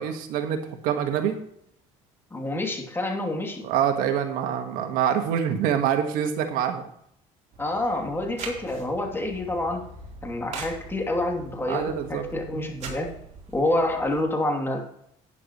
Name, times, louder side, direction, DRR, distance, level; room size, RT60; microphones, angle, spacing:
voice 1, 0.0-1.4 3.6-6.8 11.7-12.3 12.5-12.7, right 9 dB, 80° right, 6 dB, 1.6 m, -25 dB
voice 2, 2.3-3.6 7.6-9.8 10.2-13.1 13.5-14.8, left 1 dB, 15° left, 2 dB, 2.8 m, -27 dB
sound 1, 7.5-14.2, right 3 dB, 55° right, 3.8 m, -42 dB
12.0 x 9.8 x 3.1 m, 0.70 s
cardioid pair, 105°, 14 cm